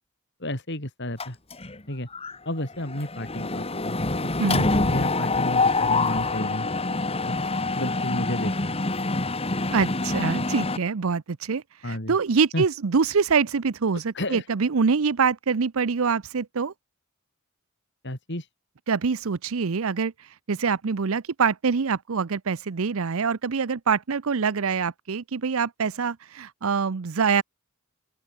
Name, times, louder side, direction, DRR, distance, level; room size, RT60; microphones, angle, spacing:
voice 1, 0.4-1.4 1.9-2.1 2.4-4.0 4.2-4.3 4.8-6.7 7.3-7.4 7.7-8.8 11.8-12.2 12.5-12.6 14.1-14.5 18.0-18.5, left 1 dB, 55° left, 6.2 m, -31 dB
Mechanisms, 1.2-1.8 2.1-2.3 2.6-10.8, left 3 dB, 25° left, 1.9 m, -26 dB
voice 2, 9.7-16.7 18.9-27.4, right 5 dB, 65° right, 0.6 m, -25 dB
open air
head